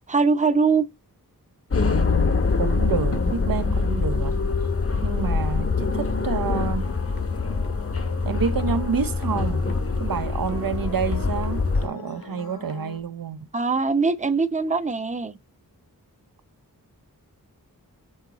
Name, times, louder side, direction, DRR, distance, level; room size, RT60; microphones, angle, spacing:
voice 1, 0.1-0.9 13.5-15.3, right 4 dB, 20° right, 0.6 m, -22 dB
sound 1, 1.7-11.9, left 4 dB, 40° left, 0.9 m, -24 dB
voice 2, 2.6-4.4 5.0-6.9 8.2-9.6 10.0-13.5, right 6 dB, 70° right, 0.6 m, -28 dB
sound 2, 6.8-13.0, left 3 dB, 80° left, 1.6 m, -40 dB
6.5 x 4.7 x 3.9 m
wide cardioid pair, 80°, 36 cm